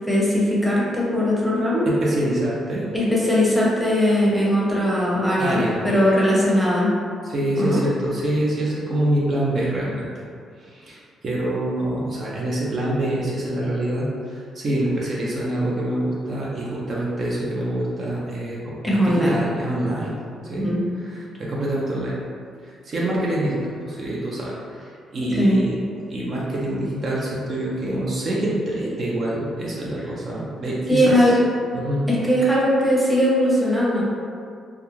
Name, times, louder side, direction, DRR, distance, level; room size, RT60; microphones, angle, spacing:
voice 1, 0.1-1.9 2.9-6.9 7.6-7.8 18.8-19.4 20.4-20.8 25.3-25.6 30.9-31.3 32.1-34.0, equal, ahead, -6 dB, 0.7 m, -19 dB
voice 2, 1.9-2.9 5.4-5.8 7.2-10.2 10.6-20.2 20.4-20.7 21.0-22.2 22.6-25.8 26.1-31.4 31.7-32.1, right 1 dB, 50° right, -6 dB, 0.5 m, -26 dB
2.3 x 2.3 x 3.1 m, 2.2 s
cardioid pair, 90°, 0 cm